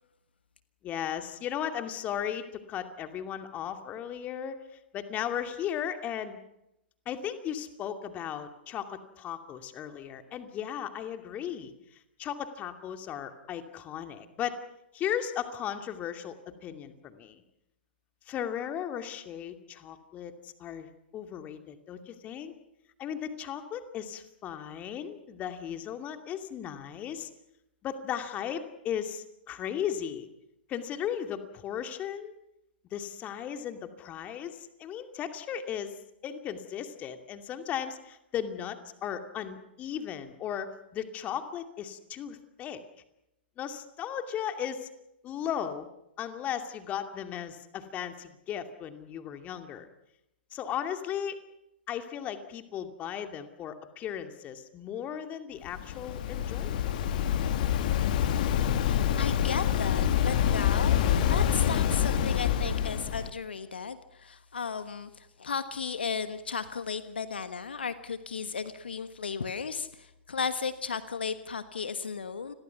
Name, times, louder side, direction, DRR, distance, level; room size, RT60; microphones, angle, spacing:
voice 1, 0.8-4.6 4.9-6.4 7.1-11.7 12.2-14.6 14.9-17.4 18.3-22.5 23.0-27.3 27.8-30.3 30.7-32.3 32.9-36.0 36.2-42.8 43.6-44.9 45.2-45.9 46.2-49.9 50.5-51.4 51.9-56.9, left 9 dB, 25° left, 8 dB, 2.5 m, -36 dB
Waves surf, 55.6-63.3, left 9 dB, 50° left, 2.0 m, -26 dB
voice 2, 58.8-72.5, left 5 dB, 75° left, 12 dB, 1.3 m, -35 dB
29.5 x 22.0 x 5.9 m, 0.85 s
figure-of-eight pair, 110°, 6 cm